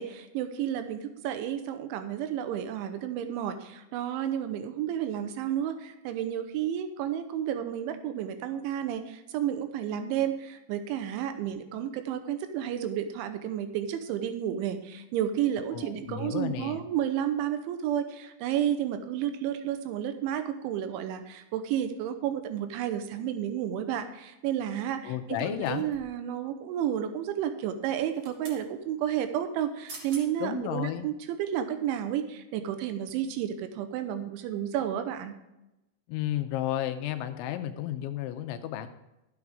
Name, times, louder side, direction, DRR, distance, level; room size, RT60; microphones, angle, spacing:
voice 1, 0.0-35.3, right 10 dB, 80° right, 8 dB, 3.2 m, -31 dB
voice 2, 15.7-16.8 25.0-25.9 30.4-31.1 36.1-38.9, left 11 dB, 80° left, 8 dB, 2.9 m, -32 dB
sound 1, 25.6-26.2 27.9-28.6 29.6-29.7 29.9-30.3 30.8-30.9, right 3 dB, 45° right, 1.8 m, -46 dB
12.5 x 9.4 x 3.6 m, 0.94 s
omnidirectional pair, 5.6 m